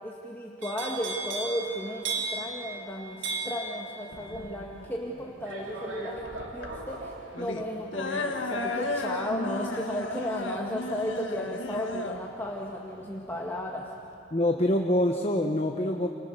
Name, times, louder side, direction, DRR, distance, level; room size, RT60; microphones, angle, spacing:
voice 1, 0.0-6.2 6.5-13.9, equal, 10° left, -3 dB, 1.9 m, -34 dB
sound 1, 0.6-12.6 12.9-13.3, right 3 dB, 85° right, 3.5 m, -39 dB
sound 2, 4.1-14.1, left 2 dB, 85° left, 1.9 m, -35 dB
voice 2, 14.3-16.1, left 1 dB, 30° left, 2 dB, 1.2 m, -25 dB
30.0 x 29.0 x 6.8 m, 2.9 s
head